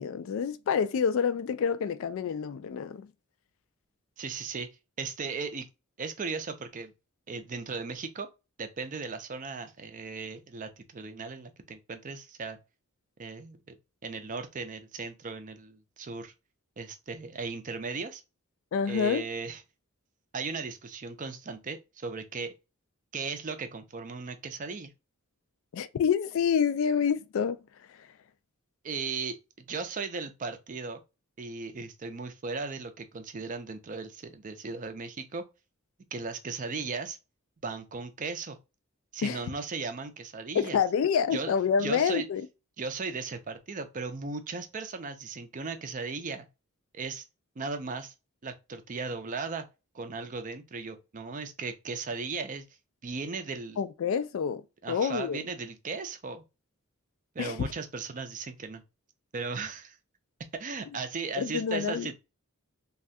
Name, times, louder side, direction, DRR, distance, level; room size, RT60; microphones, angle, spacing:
voice 1, 0.0-3.1 18.7-19.3 25.7-27.6 27.9-28.1 39.2-39.4 40.5-42.5 53.8-54.6 54.9-55.4 57.4-57.7 61.4-62.1, left 7 dB, 60° left, 0.3 m, -27 dB
voice 2, 4.2-4.7 5.0-5.7 6.0-6.9 7.3-8.3 8.6-12.6 13.2-13.8 14.0-16.3 16.8-18.2 18.9-19.6 20.3-22.5 23.1-24.9 28.8-31.0 31.4-35.4 36.1-37.2 37.6-38.6 39.1-40.8 41.3-41.5 41.8-42.3 42.8-46.5 46.9-47.2 47.6-48.1 48.4-49.7 49.9-52.7 53.0-53.8 54.8-56.4 57.4-58.8 59.3-60.0 60.5-62.2, right 4 dB, 35° right, 0.5 m, -37 dB
3.2 x 2.4 x 2.5 m
head